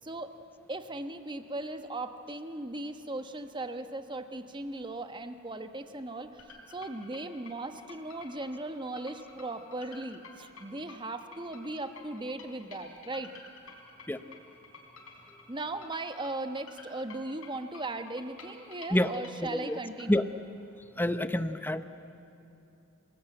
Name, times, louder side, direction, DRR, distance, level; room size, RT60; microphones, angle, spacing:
voice 1, 0.0-0.3 0.7-13.3 15.5-20.2, right 2 dB, 20° right, 8 dB, 1.1 m, -38 dB
sound 1, 6.4-20.1, left 4 dB, 90° left, 4.2 m, -51 dB
voice 2, 19.4-19.8 20.1-20.3 21.0-21.8, left 1 dB, 10° left, 11 dB, 0.8 m, -27 dB
27.5 x 19.0 x 8.9 m, 2.9 s
head